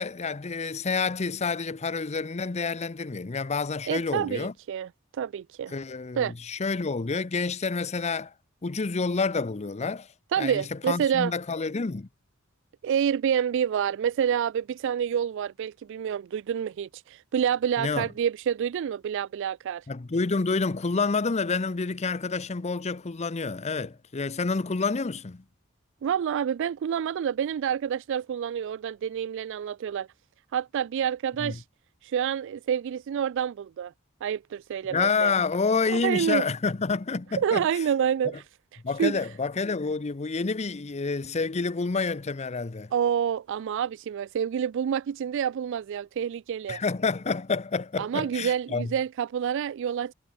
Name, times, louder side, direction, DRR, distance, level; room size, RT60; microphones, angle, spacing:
voice 1, 0.0-4.5 5.7-8.3 8.6-10.1 10.4-12.1 17.8-18.1 19.9-25.4 31.4-31.6 34.9-37.7 38.8-42.9 46.7-48.9, left 4 dB, 30° left, 0.6 m, -28 dB
voice 2, 3.9-5.7 6.2-6.3 10.3-11.3 12.8-19.8 26.0-30.1 30.5-31.6 32.0-33.9 34.2-35.3 35.9-36.4 37.4-38.4 39.0-39.2 42.9-46.8 48.0-50.1, right 8 dB, 60° right, 0.3 m, -28 dB
head